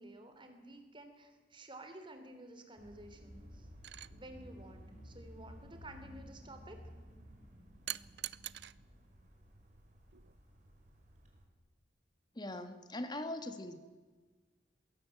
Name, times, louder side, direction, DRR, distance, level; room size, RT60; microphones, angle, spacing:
voice 1, 0.0-3.7 4.1-6.8, right 1 dB, 30° right, 6 dB, 3.4 m, -52 dB
sound 1, 2.8-11.4, equal, 45° right, 4.6 m, -55 dB
sound 2, 3.8-4.1 7.9-8.7 10.1-10.3, right 14 dB, 70° right, 0.6 m, -42 dB
voice 2, 12.3-13.8, left 1 dB, 25° left, 9 dB, 1.9 m, -41 dB
22.0 x 17.5 x 7.8 m, 1.4 s
head